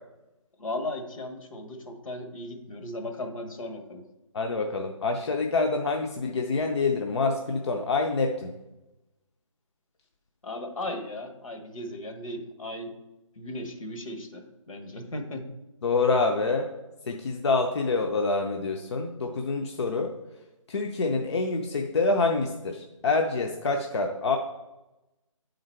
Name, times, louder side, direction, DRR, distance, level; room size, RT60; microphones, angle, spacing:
voice 1, 0.6-4.0 10.4-12.9 13.4-15.5, left 1 dB, 75° left, 5 dB, 1.2 m, -36 dB
voice 2, 4.3-8.5 15.8-16.7 17.1-20.1 20.7-24.4, left 3 dB, 55° left, 3 dB, 0.6 m, -26 dB
8.5 x 3.9 x 4.4 m, 1.0 s
figure-of-eight pair, 155°, 17 cm